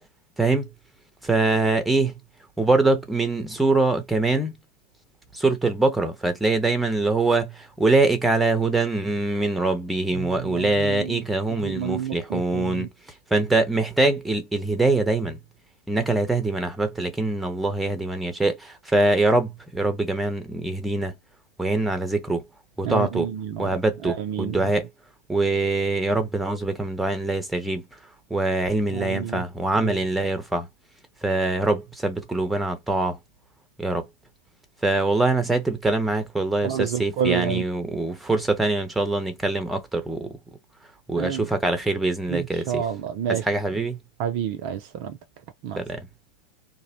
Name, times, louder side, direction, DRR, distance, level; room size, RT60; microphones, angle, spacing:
voice 1, 0.4-0.7 1.2-2.1 2.6-4.5 5.3-12.9 13.3-15.4 15.9-21.1 21.6-22.4 22.8-23.3 23.6-24.9 25.3-27.8 28.3-30.7 31.2-33.2 33.8-34.1 34.8-40.3 41.1-42.9 43.3-44.0 45.8-46.0, right 2 dB, 5° right, 0.6 m, -23 dB
voice 2, 10.2-11.2 11.6-12.9 22.8-23.7 24.0-24.6 28.9-29.4 29.8-30.0 36.6-37.6 41.2-41.5 42.3-43.4 44.2-45.2 45.6-45.8, right 9 dB, 45° right, 0.3 m, -29 dB
2.6 x 2.0 x 2.7 m
figure-of-eight pair, 90°, 0 cm